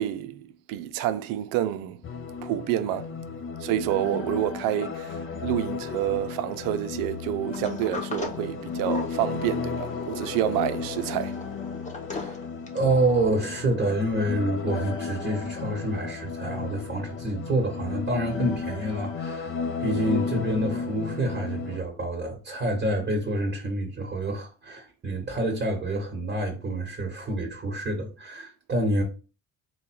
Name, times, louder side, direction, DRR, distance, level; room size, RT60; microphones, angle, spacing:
voice 1, 0.0-2.0 2.4-3.1 3.6-11.4, right 12 dB, 75° right, 0.5 m, -28 dB
sound 1, 2.0-21.8, left 5 dB, 35° left, 0.6 m, -34 dB
Sliding door, 7.5-13.0, left 4 dB, 20° left, 1.2 m, -39 dB
voice 2, 12.7-19.5 19.8-29.0, right 1 dB, 30° right, 1.5 m, -28 dB
3.6 x 2.3 x 4.4 m
supercardioid pair, 70°, 34 cm